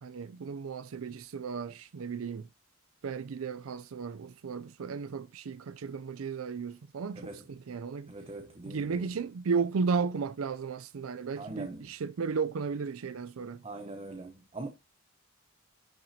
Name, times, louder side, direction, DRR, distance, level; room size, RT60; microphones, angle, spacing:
voice 1, 0.0-2.5 3.0-8.1 8.7-13.6, right 5 dB, 80° right, 0.5 m, -34 dB
voice 2, 7.1-7.5 8.1-9.2 11.4-11.9 13.6-14.7, right 2 dB, 30° right, 0.9 m, -42 dB
11.0 x 5.9 x 2.8 m
head